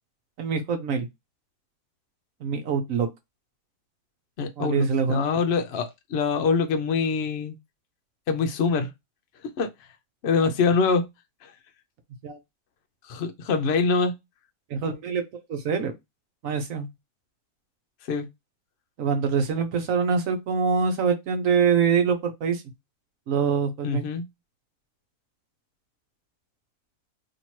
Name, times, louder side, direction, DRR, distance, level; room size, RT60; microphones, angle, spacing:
voice 1, 0.4-1.1 2.4-3.1 4.6-5.2 12.2-12.4 14.7-15.2 15.5-15.9 16.4-16.9 19.0-22.6 23.3-24.0, right 6 dB, 65° right, 1.0 m, -24 dB
voice 2, 4.4-7.6 8.3-8.9 9.6-9.7 10.2-11.1 11.4-11.5 13.1-14.1 18.1-18.3 23.8-24.3, left 4 dB, 55° left, 0.7 m, -24 dB
2.9 x 2.8 x 4.5 m
omnidirectional pair, 1.7 m